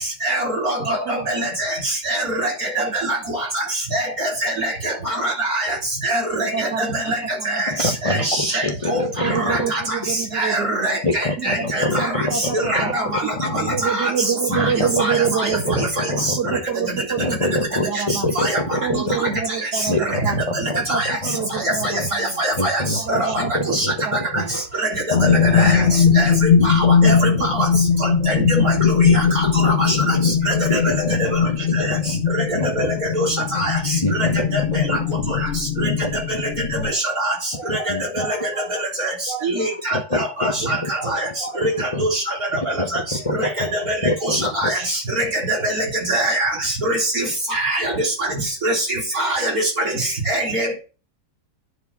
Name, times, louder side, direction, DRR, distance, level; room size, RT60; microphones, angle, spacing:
voice 1, 0.2-1.0 1.3-1.5 2.1-2.5 2.8-2.9 3.9-4.0 4.4-4.9 5.2-5.7 6.0-6.5 6.9-7.2 8.1-9.0 9.5-9.6 10.4-10.9 11.4-11.8 12.7-13.3 14.0-14.1 15.8-15.9 18.4-18.6 20.9-21.0 22.4-22.8 23.7-23.9 25.5-25.8 26.2-26.3 26.6-26.7 27.0-27.5 28.3-28.4 28.6-28.9 29.3-30.0 30.5-30.8 33.1-33.3 33.6-33.7 37.2-37.3 39.4-39.7 40.1-40.7 41.1-41.2 41.6-41.7 42.0-42.1 43.4-43.5 43.9-44.0 44.3-44.8 45.2-46.5 46.9-47.2 47.5-47.9 48.6-48.7 49.2-49.5 50.3-50.8, right 1 dB, 60° right, -3 dB, 4.3 m, -22 dB
voice 2, 0.8-1.5 2.8-3.0 6.4-7.8 9.2-11.0 11.4-13.2 13.6-18.3 18.8-20.0 20.2-20.4 20.7-22.4 23.0-23.7 24.1-24.2 26.8-27.8, right 7 dB, 75° right, 3 dB, 1.7 m, -27 dB
voice 3, 7.7-9.7 10.0-10.1 11.0-13.8 14.5-14.9 15.2-16.6 17.2-19.4 19.9-20.8 21.2-22.1 22.6-24.8 25.1-26.0 26.6-27.7 28.2-28.3 28.8-30.4 30.7-32.2 32.5-33.7 34.0-35.4 35.8-37.0 37.5-42.1 42.8-44.9 45.2-45.3, left 2 dB, 30° left, 2 dB, 0.6 m, -27 dB
sound 1, 25.1-36.9, left 7 dB, 75° left, 0.6 m, -19 dB
9.9 x 4.8 x 6.9 m, 0.35 s
omnidirectional pair, 1.8 m